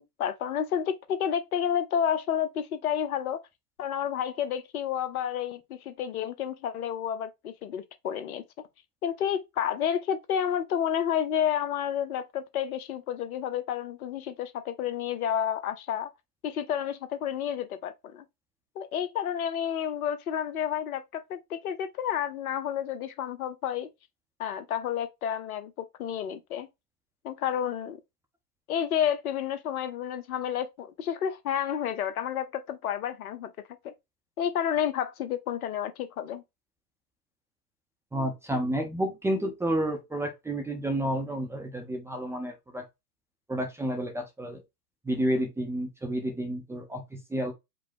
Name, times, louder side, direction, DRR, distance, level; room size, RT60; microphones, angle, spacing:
voice 1, 0.0-3.4 3.8-8.7 9.0-16.1 16.4-18.3 18.7-23.9 24.4-26.7 27.2-28.0 28.7-33.5 33.8-33.9 34.4-36.4, left 9 dB, 65° left, 1.0 m, -30 dB
voice 2, 38.1-42.8 43.5-44.6 45.1-47.5, right 1 dB, 5° right, 0.7 m, -30 dB
5.2 x 2.1 x 4.3 m
hypercardioid pair, 115°, 47 cm